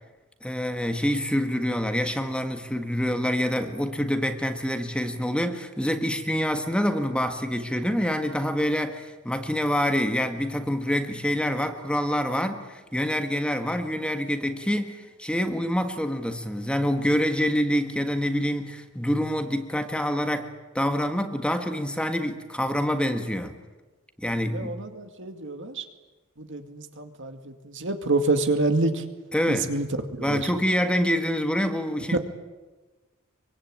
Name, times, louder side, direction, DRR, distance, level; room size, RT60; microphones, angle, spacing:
voice 1, 0.4-23.6 24.2-24.8 29.3-29.7 30.2-32.2, equal, 5° left, 6 dB, 1.6 m, -26 dB
voice 2, 24.3-25.8 26.4-29.0 29.5-30.5 32.1-32.2, right 2 dB, 60° right, 7 dB, 2.3 m, -27 dB
24.0 x 24.0 x 8.9 m, 1.2 s
head